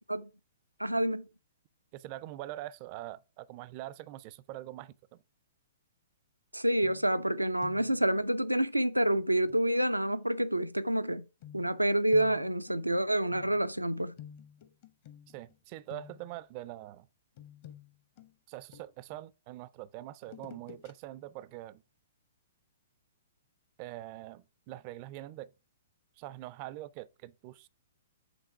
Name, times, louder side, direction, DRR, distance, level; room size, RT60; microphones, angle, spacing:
voice 1, 0.8-1.3 6.5-11.2 11.5-14.1, right 1 dB, 85° right, 0.5 m, -28 dB
voice 2, 1.9-5.2 15.3-17.1 18.5-21.8 23.8-25.5 26.2-27.7, right 15 dB, 35° right, 0.4 m, -44 dB
sound 1, 6.8-7.3 7.6-8.1 9.5-9.7 11.4-15.6 15.9-16.4 17.4-19.2 20.2-20.9 21.3-21.4, left 9 dB, 40° left, 0.9 m, -51 dB
7.9 x 3.6 x 4.6 m
figure-of-eight pair, 115°, 0 cm